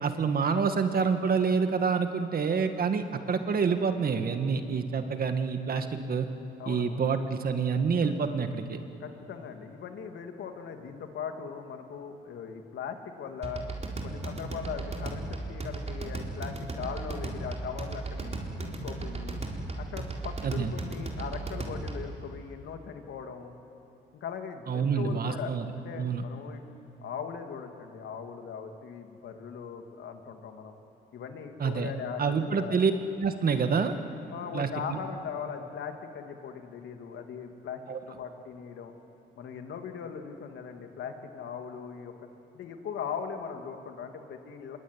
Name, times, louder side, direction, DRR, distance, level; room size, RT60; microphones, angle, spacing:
voice 1, 0.0-6.3 6.7-8.8 20.4-20.7 24.7-26.2 31.6-31.9 32.2-32.9 33.2-33.9 34.5-35.0 37.9-38.0, right 5 dB, 50° right, 7 dB, 1.9 m, -27 dB
voice 2, 6.6-7.0 9.0-13.6 14.0-19.4 19.8-23.6 24.2-26.6 27.0-30.7 31.1-32.8 34.3-38.9 39.4-42.1 42.5-44.8, left 7 dB, 75° left, 5 dB, 2.5 m, -39 dB
sound 1, 13.4-22.2, right 2 dB, 35° right, 4.0 m, -36 dB
25.5 x 23.0 x 9.4 m, 2.9 s
cardioid pair, 90°, 20 cm